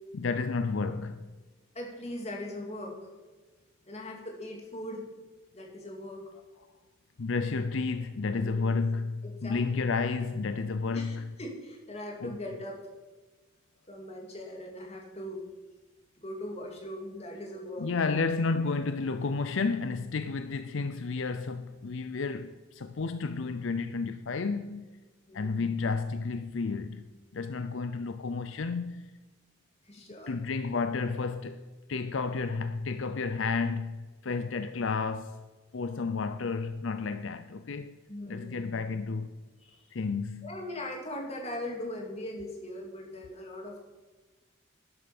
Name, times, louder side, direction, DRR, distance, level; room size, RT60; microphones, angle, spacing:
voice 1, 0.1-1.3 7.2-11.3 12.2-12.3 17.8-24.9 25.3-29.2 30.3-31.6 31.9-35.4 35.7-38.0 38.3-39.3 39.9-40.6, left 4 dB, 65° left, 0.5 m, -31 dB
voice 2, 1.7-3.0 3.9-5.1 5.5-6.2 8.4-8.6 9.2-9.8 10.9-12.8 13.9-15.4 16.2-17.9 25.3-25.7 29.8-30.3 38.1-38.8 39.6-39.8 40.4-43.8, left 1 dB, 30° left, 2.4 m, -40 dB
12.0 x 9.9 x 5.9 m
head